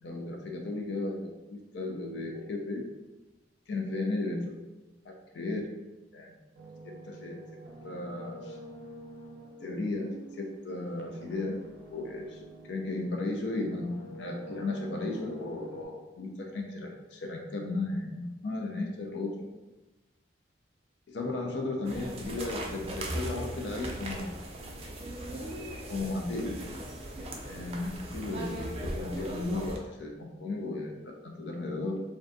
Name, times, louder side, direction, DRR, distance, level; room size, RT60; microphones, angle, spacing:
voice 1, 0.0-2.8 3.7-4.6 5.1-5.7 6.1-6.4 6.8-7.4 7.8-8.6 9.6-11.6 11.9-19.5 21.1-24.3 25.9-26.6 27.5-32.0, left 2 dB, 65° left, 1 dB, 0.4 m, -35 dB
sound 1, 6.5-13.3 13.6-15.8, right 1 dB, 85° right, 0.5 m, -47 dB
sound 2, 21.8-29.8, right 1 dB, 30° right, 0.3 m, -38 dB
2.5 x 2.2 x 2.5 m, 1.1 s
head